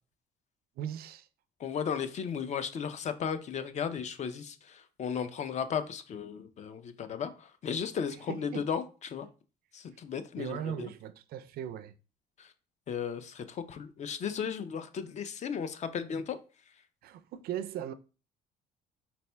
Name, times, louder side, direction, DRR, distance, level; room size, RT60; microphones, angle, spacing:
voice 1, 0.8-1.3 8.3-8.7 10.4-11.9 17.0-17.9, right 10 dB, 65° right, 0.4 m, -38 dB
voice 2, 1.6-9.3 9.7-10.9 12.4-12.5 12.9-16.4, left 7 dB, 45° left, 0.5 m, -35 dB
4.1 x 4.1 x 2.2 m
cardioid pair, 110°, 17 cm